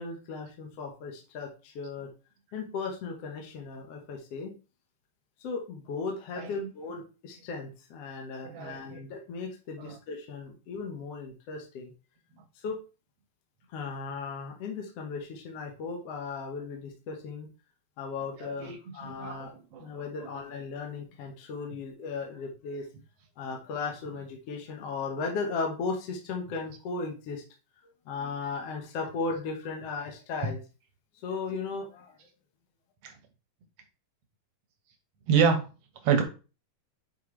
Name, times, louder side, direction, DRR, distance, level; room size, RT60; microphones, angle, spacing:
voice 1, 0.0-2.1 2.5-4.5 5.4-11.9 12.5-12.8 13.7-17.5 18.0-19.5 19.8-22.9 23.4-27.4 27.8-30.6 31.2-32.2, left 4 dB, 60° left, 1 dB, 1.9 m, -36 dB
voice 2, 6.4-6.7 8.4-9.0 9.8-10.0 18.4-19.5 19.7-19.9 20.2-20.3 33.0-33.1 35.3-35.6 36.0-36.2, right 6 dB, 60° right, 5 dB, 1.9 m, -28 dB
9.5 x 4.5 x 3.2 m, 0.33 s
omnidirectional pair, 3.9 m